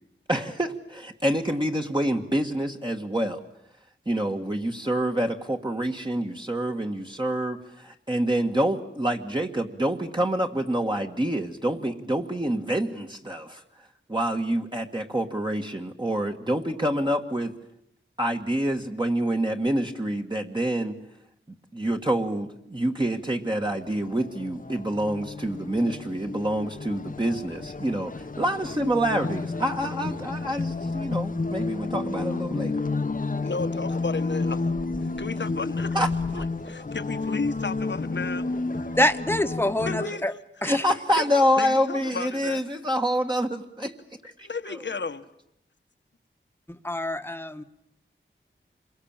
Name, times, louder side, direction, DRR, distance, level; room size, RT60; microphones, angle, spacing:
voice 1, 0.3-3.4 4.1-13.6 14.1-17.5 18.2-20.9 21.7-32.8 35.9-36.1 40.6-43.9 44.2-44.5, right 1 dB, 20° right, 2 dB, 1.7 m, -27 dB
sound 1, 23.3-40.1, left 3 dB, 40° left, 1.1 m, -31 dB
voice 2, 33.4-34.6 35.2-36.0 36.3-39.0 39.8-40.3 41.2-42.6 44.4-45.2, left 4 dB, 60° left, 11 dB, 1.4 m, -33 dB
voice 3, 39.0-40.3 40.6-40.9 46.7-47.6, left 1 dB, 10° left, 8 dB, 1.4 m, -26 dB
27.0 x 22.5 x 8.9 m, 0.78 s
wide cardioid pair, 75°, 21 cm